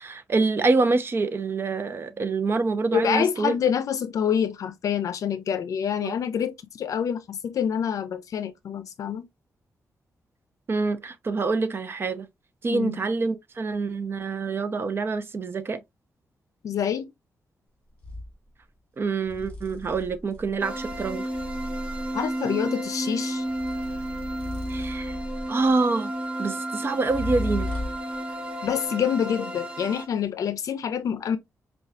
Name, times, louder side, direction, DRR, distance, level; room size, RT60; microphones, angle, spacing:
voice 1, 0.0-3.5 6.0-6.1 10.7-12.3 12.6-15.8 19.0-21.2 24.7-25.2 25.5-26.1 26.4-27.7, right 3 dB, 40° right, 0.6 m, -26 dB
voice 2, 2.9-9.3 12.7-13.0 16.6-17.0 22.1-23.4 28.6-31.4, left 8 dB, 75° left, 0.5 m, -27 dB
sound 1, 18.0-18.3 19.2-22.2 23.4-25.7 27.0-28.1, left 1 dB, 15° left, 2.1 m, -35 dB
sound 2, 20.6-30.1, right 1 dB, 20° right, 1.0 m, -32 dB
5.3 x 2.3 x 2.4 m
wide cardioid pair, 110°, 6 cm